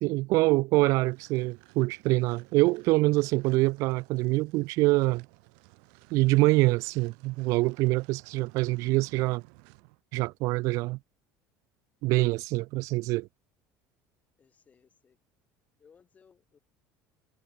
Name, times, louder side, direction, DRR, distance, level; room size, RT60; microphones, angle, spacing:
voice 1, 0.0-5.3 6.1-9.4 10.1-11.0 12.0-13.3, right 22 dB, 65° right, 0.4 m, -25 dB
sound 1, 1.0-10.0, right 40 dB or more, 85° right, 5.4 m, -57 dB
voice 2, 14.4-15.2 15.8-16.6, left 6 dB, 25° left, 5.2 m, -61 dB
cardioid pair, 140°, 6 cm